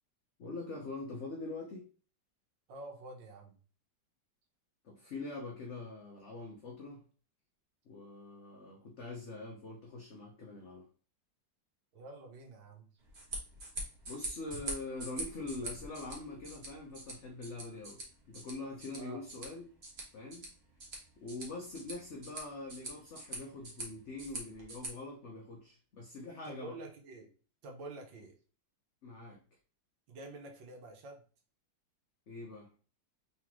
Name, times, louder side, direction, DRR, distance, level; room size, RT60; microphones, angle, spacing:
voice 1, 0.4-1.9 4.8-7.0 7.9-10.9 14.1-18.0 18.3-19.7 20.1-20.5 21.2-26.7 29.0-29.4 32.3-32.7, left 2 dB, 50° left, -1 dB, 0.9 m, -44 dB
voice 2, 2.7-3.6 11.9-13.0 19.0-19.2 26.5-27.3 27.6-28.4 30.1-31.2, right 2 dB, 80° right, 2 dB, 1.7 m, -48 dB
sound 1, 13.0-24.9, right 2 dB, 40° right, 1.4 m, -45 dB
4.0 x 3.7 x 3.0 m, 0.40 s
omnidirectional pair, 2.0 m